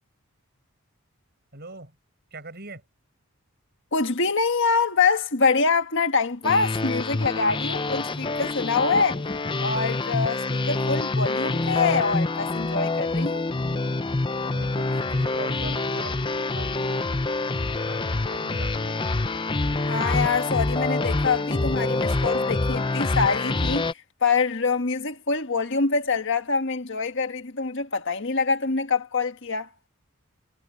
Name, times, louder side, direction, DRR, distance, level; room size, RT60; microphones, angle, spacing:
voice 1, 1.5-1.9 2.3-2.8 14.5-19.1, right 2 dB, 45° right, 6.3 m, -41 dB
voice 2, 3.9-9.2 9.6-13.5 19.9-29.7, left 4 dB, 55° left, 1.6 m, -25 dB
sound 1, 6.4-23.9, left 2 dB, 20° left, 0.6 m, -26 dB
head